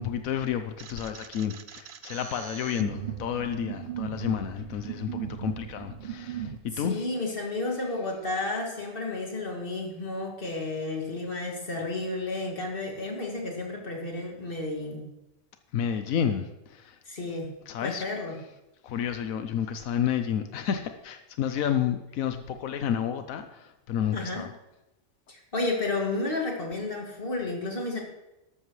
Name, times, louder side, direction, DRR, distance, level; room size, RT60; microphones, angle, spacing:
voice 1, 0.0-7.1 15.7-17.0 17.7-18.0 18.8-24.5, left 8 dB, 90° left, 8 dB, 1.2 m, -30 dB
sound 1, 0.8-6.6, right 9 dB, 50° right, 0.7 m, -38 dB
voice 2, 6.7-15.1 17.0-17.5 17.8-18.4 24.1-24.5 25.3-28.0, left 2 dB, 40° left, 0 dB, 2.6 m, -32 dB
13.0 x 12.5 x 3.2 m, 0.97 s
omnidirectional pair, 1.4 m